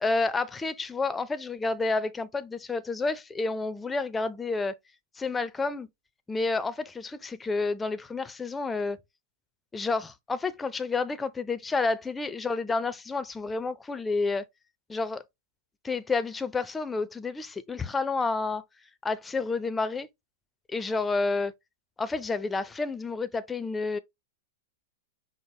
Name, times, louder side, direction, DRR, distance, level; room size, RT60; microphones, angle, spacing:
voice 1, 0.0-4.7 5.2-5.9 6.3-9.0 9.7-14.5 14.9-15.2 15.8-18.6 19.0-20.1 20.7-21.5 22.0-24.0, left 3 dB, 15° left, 0.5 m, -30 dB
5.2 x 2.0 x 4.7 m
hypercardioid pair, 105°, 0 cm